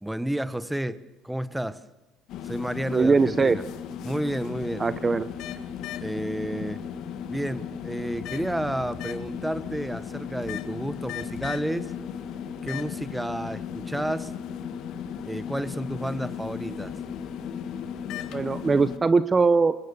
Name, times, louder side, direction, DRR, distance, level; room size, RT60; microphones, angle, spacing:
voice 1, 0.0-1.8 2.4-3.6 4.0-4.9 6.0-6.8 7.3-11.9 12.6-14.3 15.3-16.9, right 1 dB, 5° right, 14 dB, 1.1 m, -31 dB
sound 1, 2.3-19.0, left 8 dB, 70° left, 1.6 m, -36 dB
voice 2, 2.9-3.6 4.8-5.3 18.3-19.8, right 4 dB, 25° right, 13 dB, 0.8 m, -21 dB
25.5 x 22.0 x 6.9 m, 1.1 s
cardioid pair, 100°, 0 cm